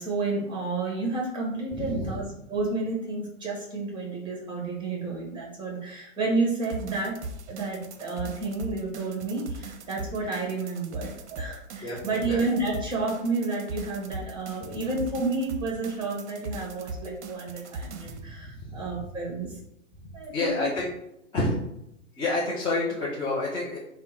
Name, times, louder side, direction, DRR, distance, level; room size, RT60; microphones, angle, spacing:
voice 1, 0.0-2.2 2.5-7.1 7.5-19.5 20.1-20.6, right 3 dB, 10° right, -2 dB, 1.3 m, -30 dB
voice 2, 1.7-2.3 11.8-12.0 12.2-12.4 14.7-14.8 18.1-19.0 20.0-20.9 21.3-21.6 22.1-23.8, left 2 dB, 15° left, -7 dB, 0.5 m, -29 dB
sound 1, 6.6-18.2, right 2 dB, 60° right, 0.6 m, -39 dB
3.4 x 2.1 x 4.3 m, 0.83 s
hypercardioid pair, 120°, 39 cm